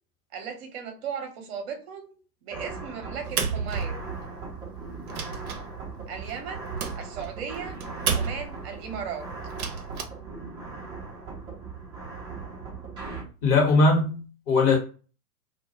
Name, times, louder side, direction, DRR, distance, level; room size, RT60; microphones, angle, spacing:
voice 1, 0.3-4.0 6.1-6.7 6.9-7.7 8.1-9.3, right 6 dB, 40° right, 0.8 m, -36 dB
sound 1, 2.5-13.2, right 4 dB, 10° right, 0.4 m, -39 dB
sound 2, 3.2-4.4 4.8-8.7 9.4-10.0, right 6 dB, 65° right, 0.6 m, -32 dB
voice 2, 13.4-14.8, left 3 dB, 40° left, 1.1 m, -20 dB
2.2 x 2.2 x 2.9 m
figure-of-eight pair, 100°, 47 cm